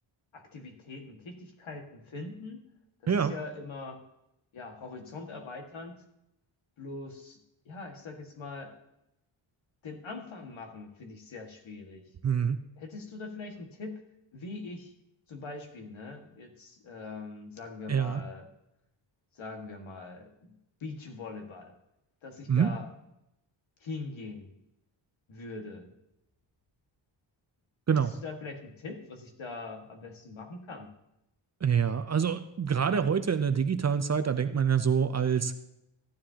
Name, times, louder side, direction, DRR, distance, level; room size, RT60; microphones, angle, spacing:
voice 1, 0.3-2.6 3.0-4.0 4.5-6.0 6.8-7.4 7.7-8.7 9.8-12.0 12.8-14.0 14.3-14.9 15.3-18.5 19.3-21.7 22.2-22.9 23.8-24.5 25.3-25.9 27.9-30.9, left 3 dB, 70° left, 3 dB, 1.9 m, -42 dB
voice 2, 12.2-12.6 17.9-18.2 22.5-22.7 27.9-28.1 31.6-35.6, right 7 dB, 35° right, 10 dB, 0.5 m, -26 dB
14.0 x 10.0 x 2.8 m, 0.85 s
wide cardioid pair, 135°, 48 cm